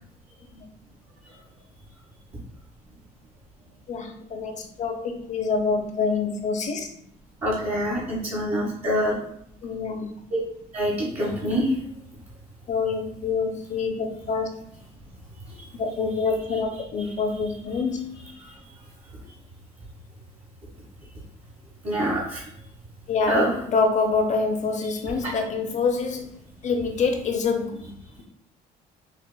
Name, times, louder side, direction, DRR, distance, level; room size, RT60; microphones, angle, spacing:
voice 1, 3.9-6.9 9.6-10.2 12.7-14.5 15.7-18.0 23.1-26.3 26.6-27.9, left 4 dB, 45° left, 5 dB, 0.7 m, -26 dB
voice 2, 7.4-9.1 10.3-10.4 10.7-11.7 21.8-22.4 23.3-23.5, equal, 40° right, -6 dB, 1.2 m, -25 dB
6.0 x 2.5 x 2.2 m, 0.71 s
cardioid pair, 110°, 17 cm